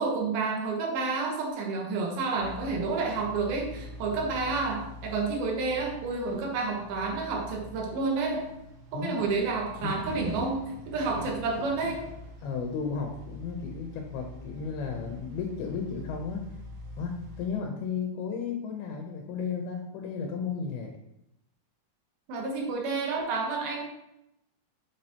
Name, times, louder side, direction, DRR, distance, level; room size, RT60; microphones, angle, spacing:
voice 1, 0.0-8.5 8.9-12.0 22.3-23.9, right 4 dB, 80° right, 1 dB, 3.0 m, -30 dB
sound 1, 2.4-17.5, left 1 dB, 65° right, 2.1 m, -44 dB
voice 2, 12.4-16.5 17.0-20.9, left 5 dB, 85° left, 2 dB, 2.9 m, -34 dB
7.7 x 7.1 x 2.9 m, 0.85 s
omnidirectional pair, 4.3 m